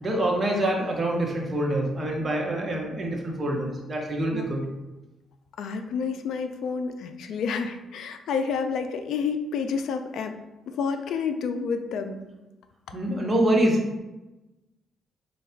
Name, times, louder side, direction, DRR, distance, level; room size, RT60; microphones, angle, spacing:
voice 1, 0.0-4.6 12.9-14.0, right 1 dB, 30° right, 0 dB, 0.8 m, -25 dB
voice 2, 5.6-10.4 10.7-12.2 12.9-13.0, left 5 dB, 75° left, 8 dB, 0.3 m, -29 dB
3.3 x 2.3 x 4.3 m, 1.0 s
cardioid pair, 90°, 0 cm